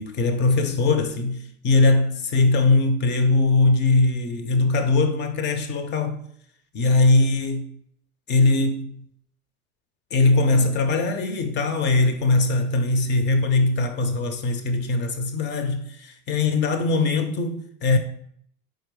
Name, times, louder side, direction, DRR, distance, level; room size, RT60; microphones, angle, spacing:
voice 1, 0.0-6.2 6.7-7.7 8.3-9.0 10.1-18.0, left 3 dB, 25° left, 0.5 m, -21 dB
4.5 x 3.7 x 3.1 m
figure-of-eight pair, 70°, 45 cm